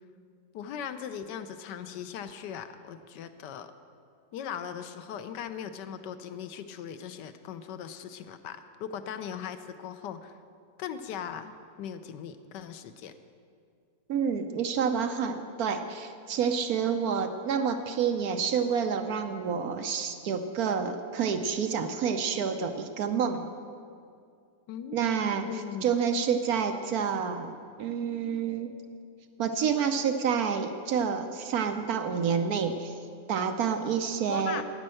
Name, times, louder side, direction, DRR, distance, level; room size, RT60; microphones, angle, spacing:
voice 1, 0.5-3.7 4.3-10.4 10.8-13.1 24.7-25.0 25.3-25.9 34.3-34.6, left 8 dB, 85° left, 10 dB, 1.3 m, -39 dB
voice 2, 14.1-23.5 24.9-27.5 27.8-28.7 29.4-32.9 33.3-34.6, right 6 dB, 65° right, 7 dB, 1.1 m, -28 dB
9.9 x 9.7 x 7.6 m, 2.3 s
omnidirectional pair, 1.8 m